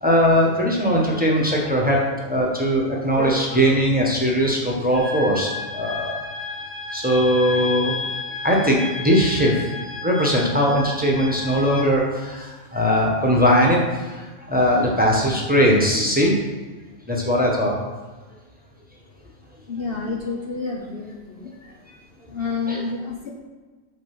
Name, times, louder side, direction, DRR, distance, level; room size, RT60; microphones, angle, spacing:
voice 1, 0.0-6.2 6.9-7.9 8.4-9.7 10.0-16.4 17.1-17.7 22.7-22.8, equal, 5° right, -3 dB, 1.2 m, -20 dB
sound 1, 4.9-11.8, left 3 dB, 20° left, 0.4 m, -33 dB
voice 2, 19.7-21.5 22.3-23.3, left 4 dB, 50° left, -1 dB, 1.0 m, -29 dB
6.4 x 5.0 x 6.1 m, 1.3 s
omnidirectional pair, 1.4 m